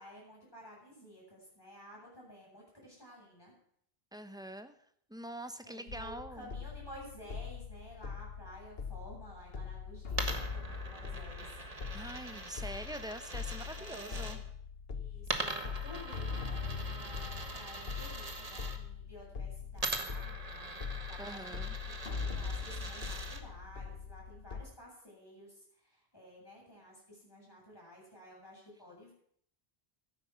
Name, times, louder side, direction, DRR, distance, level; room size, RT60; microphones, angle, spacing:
voice 1, 0.0-3.5 5.6-11.6 13.8-14.4 14.9-29.1, equal, 20° left, -3 dB, 7.3 m, -53 dB
voice 2, 4.1-4.8 5.1-6.5 11.9-14.4 21.2-21.8, right 1 dB, 5° right, 9 dB, 0.9 m, -44 dB
sound 1, 5.9-24.6, left 5 dB, 65° left, 1.4 m, -42 dB
Coin (dropping), 10.1-14.4 15.2-18.8 19.8-23.4, right 2 dB, 35° right, 1.7 m, -42 dB
15.5 x 12.5 x 5.8 m, 0.66 s
omnidirectional pair, 1.1 m